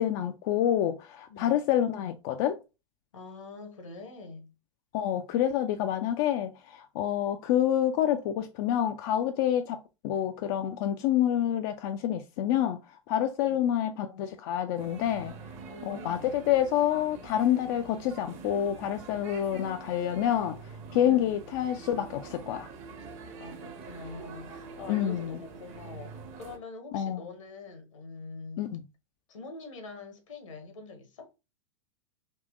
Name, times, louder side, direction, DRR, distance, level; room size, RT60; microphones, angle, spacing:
voice 1, 0.0-2.6 4.9-12.8 13.1-15.3 15.9-20.6 20.9-22.7 24.9-25.4 26.9-27.2 28.6-28.8, left 11 dB, 45° left, 0.4 m, -28 dB
voice 2, 3.1-4.5 13.4-13.7 15.6-16.3 21.0-21.4 23.4-28.6 29.3-31.3, left 3 dB, 70° left, 1.1 m, -44 dB
sound 1, 14.7-26.6, right 4 dB, 40° right, 0.8 m, -45 dB
3.6 x 2.8 x 2.4 m
figure-of-eight pair, 95°, 17 cm